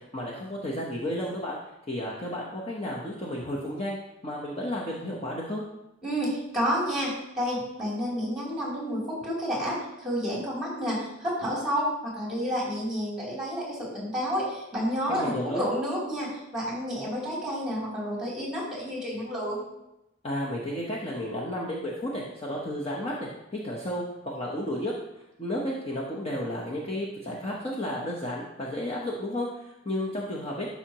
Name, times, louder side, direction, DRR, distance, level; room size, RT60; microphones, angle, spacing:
voice 1, 0.1-1.6 1.9-4.0 4.2-5.6 15.1-15.6 20.2-23.3 23.6-24.9 25.4-30.7, left 1 dB, 30° left, -4 dB, 1.1 m, -32 dB
voice 2, 6.0-19.6, equal, 5° right, -5 dB, 3.3 m, -30 dB
12.0 x 5.7 x 3.0 m, 0.88 s
head